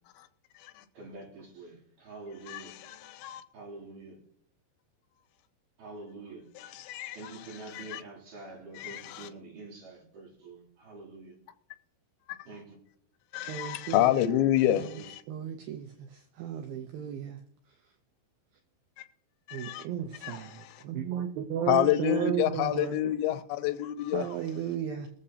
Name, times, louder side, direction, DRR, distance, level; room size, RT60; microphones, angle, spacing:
voice 1, 0.9-2.8 3.5-4.2 5.8-6.4 7.1-11.4 12.5-12.8 14.7-15.1, right 3 dB, 50° right, 4.3 m, -46 dB
voice 2, 2.5-3.4 6.6-7.3 7.7-8.0 8.8-9.3 12.3-12.4 13.3-15.2 19.0-19.1 19.5-19.9 20.2-20.8 21.7-24.2, left 12 dB, 85° left, 2.9 m, -29 dB
voice 3, 13.5-14.0 14.8-14.9 15.3-17.4 19.5-23.1 24.1-25.1, right 9 dB, 85° right, 2.0 m, -34 dB
22.0 x 7.7 x 2.8 m
omnidirectional pair, 5.2 m